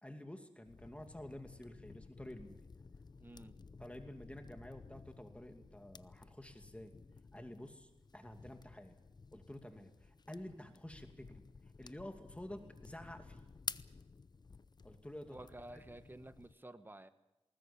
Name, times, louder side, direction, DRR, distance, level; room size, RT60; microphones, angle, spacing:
voice 1, 0.0-2.6 3.8-6.9 7.3-9.0 9.3-11.4 11.8-13.4 14.8-15.4 15.7-15.8, left 1 dB, 10° left, 5 dB, 2.5 m, -50 dB
sound 1, 0.7-16.5, left 4 dB, 40° left, 0.7 m, -53 dB
voice 2, 3.2-3.6 15.3-17.1, right 1 dB, 20° right, 10 dB, 1.4 m, -52 dB
20.5 x 19.0 x 8.5 m, 0.98 s
wide cardioid pair, 70°, 11 cm